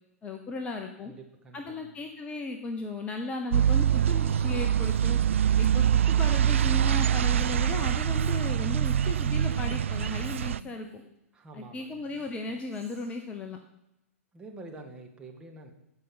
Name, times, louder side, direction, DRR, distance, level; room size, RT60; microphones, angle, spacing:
voice 1, 0.2-1.1 1.5-5.2 5.6-11.0 11.5-13.6, left 3 dB, 15° left, 4 dB, 1.0 m, -36 dB
voice 2, 1.0-2.0 11.3-12.1 14.3-15.7, right 2 dB, 10° right, 1 dB, 1.9 m, -47 dB
sound 1, 3.5-10.6, right 9 dB, 60° right, 0.4 m, -24 dB
Female speech woman speaking, 4.7-11.1 11.9-13.3, equal, 75° right, 3.4 m, -54 dB
15.0 x 5.5 x 7.8 m, 0.85 s
figure-of-eight pair, 110°, 8 cm